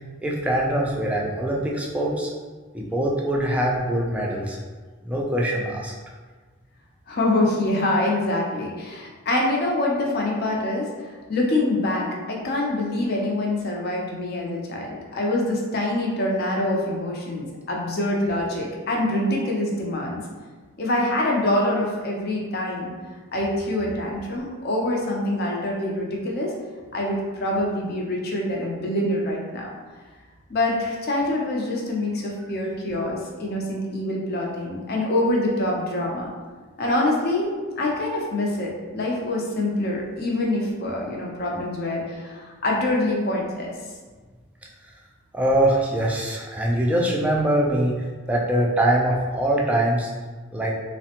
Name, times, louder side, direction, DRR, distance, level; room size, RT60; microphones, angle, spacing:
voice 1, 0.2-2.3 2.7-4.6 5.0-5.9 45.3-50.1 50.5-50.7, right 1 dB, 5° right, -3 dB, 0.3 m, -23 dB
voice 2, 7.1-20.2 20.8-22.9 23.3-26.5 26.9-29.7 30.5-36.3 36.8-43.7, left 1 dB, 50° left, -2 dB, 0.5 m, -25 dB
3.3 x 2.1 x 2.8 m, 1.4 s
head